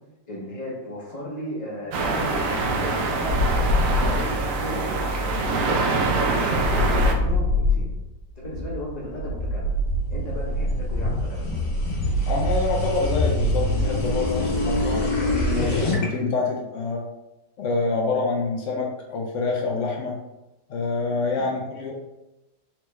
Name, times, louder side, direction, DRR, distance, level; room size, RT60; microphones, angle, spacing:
voice 1, 0.3-4.9 5.2-5.8 6.3-8.0 8.4-9.8 10.1-11.7 21.4-21.5, left 1 dB, 35° left, -5 dB, 0.6 m, -35 dB
sound 1, 1.9-7.1, right 3 dB, 75° right, 0.7 m, -24 dB
sound 2, 3.3-4.3 6.5-8.1 12.3-13.9, left 3 dB, 90° right, 1.6 m, -24 dB
sound 3, 8.3-16.1, equal, 55° left, 1.5 m, -25 dB
voice 2, 12.3-17.1 17.6-20.1 20.7-21.9, left 3 dB, 75° left, -1 dB, 0.7 m, -26 dB
4.2 x 3.0 x 3.3 m, 0.97 s
omnidirectional pair, 2.0 m